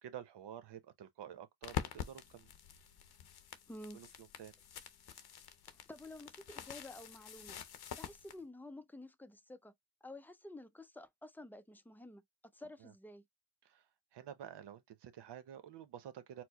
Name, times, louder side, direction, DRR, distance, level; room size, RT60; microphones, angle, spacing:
voice 1, 0.0-2.5 3.9-4.5 12.8-12.9 13.6-13.9 14.1-16.4, right 10 dB, 75° right, 0.8 m, -50 dB
sound 1, 1.6-8.4, left 9 dB, 65° left, 0.7 m, -46 dB
voice 2, 3.7-4.0 5.7-7.6 8.0-9.7 10.0-12.2 12.5-13.2, left 1 dB, 5° left, 0.5 m, -51 dB
4.4 x 2.1 x 2.8 m
cardioid pair, 75°, 42 cm